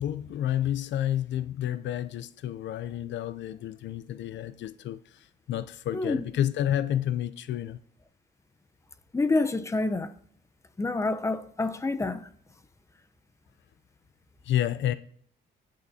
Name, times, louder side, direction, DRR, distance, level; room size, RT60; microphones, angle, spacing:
voice 1, 0.0-7.8 14.4-14.9, left 11 dB, 65° left, 0.4 m, -30 dB
voice 2, 5.9-6.3 9.1-10.1 10.8-12.2, left 3 dB, 15° left, 0.7 m, -27 dB
18.5 x 6.5 x 2.7 m
cardioid pair, 90°, 20 cm